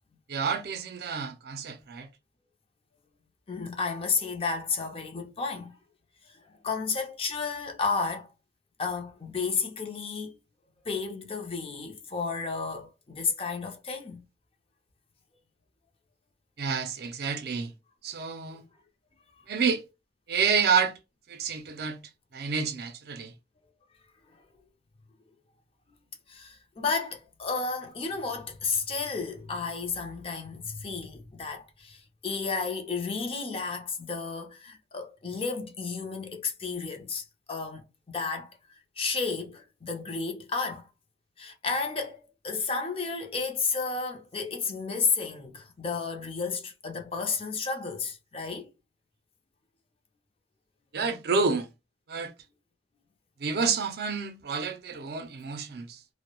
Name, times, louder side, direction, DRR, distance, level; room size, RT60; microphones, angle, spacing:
voice 1, 0.3-2.1 16.6-17.7 18.0-18.6 19.5-19.8 20.3-20.9 21.3-22.0 22.3-23.3 50.9-51.7 52.1-52.3 53.4-56.0, right 5 dB, 60° right, 0.4 m, -29 dB
voice 2, 3.5-5.7 6.6-8.3 8.8-10.4 10.8-14.2 26.3-37.8 38.1-38.5 39.0-40.9 41.4-48.7, left 4 dB, 30° left, 0.5 m, -32 dB
2.2 x 2.0 x 2.9 m
head